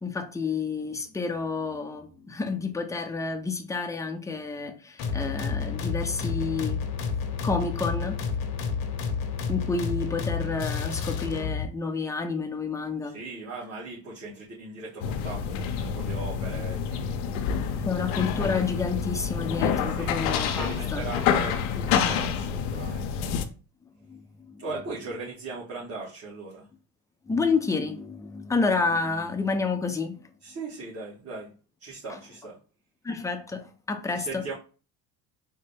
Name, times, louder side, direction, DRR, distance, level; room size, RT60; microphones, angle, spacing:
voice 1, 0.0-6.8 7.4-8.2 9.5-13.1 17.9-21.0 24.1-24.2 24.5-24.6 27.3-30.3 33.0-34.5, left 4 dB, 10° left, 0.5 m, -29 dB
sound 1, 5.0-11.7, left 5 dB, 60° left, 0.9 m, -30 dB
voice 2, 13.0-17.4 19.9-20.1 20.5-23.1 24.6-26.7 30.4-31.5 31.8-32.6 34.1-34.5, right 3 dB, 35° right, 1.5 m, -38 dB
sound 2, 15.0-23.5, left 7 dB, 85° left, 0.6 m, -28 dB
3.8 x 2.1 x 3.4 m
supercardioid pair, 85°, 40 cm